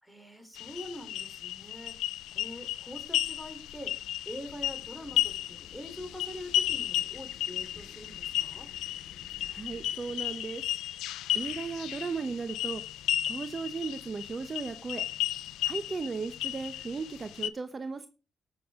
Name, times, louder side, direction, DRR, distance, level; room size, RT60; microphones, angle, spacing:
voice 1, 0.0-4.0 4.3-8.7, left 1 dB, ahead, 6 dB, 3.6 m, -44 dB
sound 1, 0.6-17.5, left 13 dB, 85° left, 0.4 m, -34 dB
sound 2, 4.5-10.4, left 5 dB, 60° left, 1.8 m, -55 dB
voice 2, 9.4-10.7 11.3-12.8 13.3-15.0 15.6-18.1, right 4 dB, 40° right, 10 dB, 0.9 m, -36 dB
17.0 x 7.0 x 3.7 m, 0.34 s
supercardioid pair, 55°, 0 cm